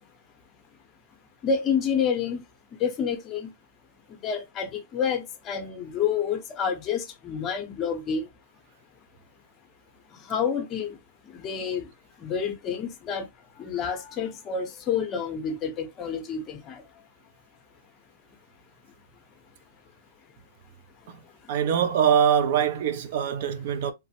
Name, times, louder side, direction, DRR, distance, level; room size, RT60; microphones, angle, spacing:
voice 1, 1.4-2.4 2.8-3.5 4.2-8.2 10.3-10.9 11.4-11.9 12.2-13.2 13.6-16.7, left 7 dB, 25° left, 0.6 m, -28 dB
voice 2, 21.5-23.9, right 8 dB, 55° right, 0.4 m, -23 dB
3.1 x 2.0 x 2.7 m
hypercardioid pair, 155°, 0 cm